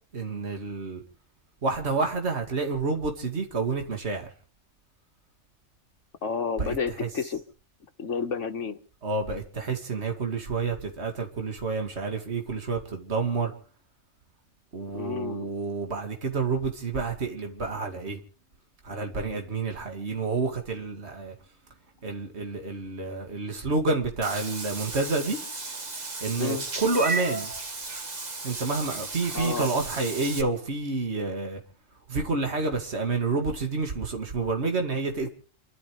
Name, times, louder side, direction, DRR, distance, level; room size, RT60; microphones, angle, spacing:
voice 1, 0.1-1.0 1.6-4.3 6.6-6.7 7.0-7.1 9.0-13.5 14.7-18.2 18.8-21.3 22.0-25.4 26.2-27.5 28.4-31.6 32.1-35.3, right 3 dB, 60° right, 2.6 m, -29 dB
voice 2, 6.2-7.4 8.0-8.8 14.9-15.5 26.4-26.6 29.3-29.7 35.2-35.3, left 5 dB, 75° left, 1.8 m, -30 dB
Meow / Water / Bathtub (filling or washing), 24.2-30.4, right 3 dB, 35° right, 1.5 m, -35 dB
29.0 x 12.0 x 3.3 m
omnidirectional pair, 1.3 m